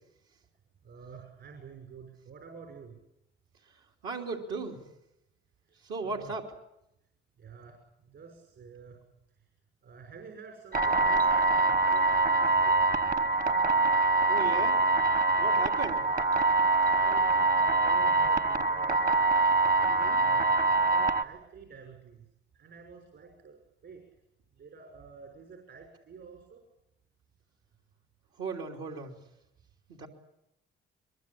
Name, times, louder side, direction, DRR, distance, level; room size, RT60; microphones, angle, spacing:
voice 1, 0.8-3.0 6.0-6.3 7.4-9.0 9.8-12.8 16.9-19.0 20.1-22.3 22.5-24.0 24.5-26.6, right 5 dB, 65° right, 2 dB, 6.0 m, -49 dB
voice 2, 4.0-4.8 5.8-6.5 14.3-14.8 15.4-16.1 19.8-20.2 28.4-29.2 29.9-30.1, right 4 dB, 90° right, 0 dB, 3.3 m, -36 dB
sound 1, 10.7-21.2, right 3 dB, 45° right, 1.1 m, -24 dB
22.5 x 22.5 x 8.7 m, 0.84 s
cardioid pair, 90°, 20 cm